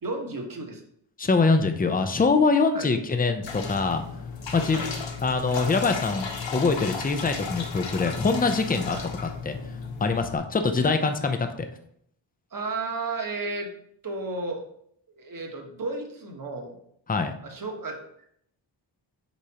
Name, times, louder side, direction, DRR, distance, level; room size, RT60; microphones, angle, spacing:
voice 1, 0.0-0.8 2.7-2.9 4.7-4.9 8.9-9.0 12.5-13.7 14.0-14.6 15.2-16.8 17.4-18.0, right 3 dB, 45° right, 3 dB, 1.3 m, -33 dB
voice 2, 1.2-4.0 4.5-4.8 5.2-9.6 10.0-11.7 17.1-17.3, left 4 dB, 20° left, 7 dB, 0.6 m, -24 dB
sound 1, 3.4-10.4, left 5 dB, 70° left, 1.1 m, -34 dB
8.1 x 5.0 x 2.9 m, 0.69 s
wide cardioid pair, 100°, 46 cm